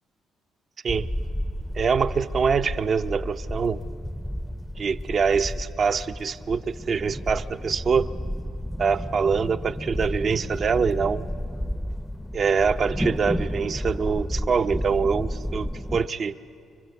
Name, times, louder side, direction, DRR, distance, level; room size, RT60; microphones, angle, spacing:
sound 1, 0.9-16.1, equal, ahead, 0.6 m, -32 dB
voice 1, 1.8-3.8 4.8-8.1 8.8-11.3 12.3-16.3, right 5 dB, 45° right, 10 dB, 0.8 m, -24 dB
29.0 x 25.0 x 8.2 m, 2.5 s
cardioid pair, 110°, 0 cm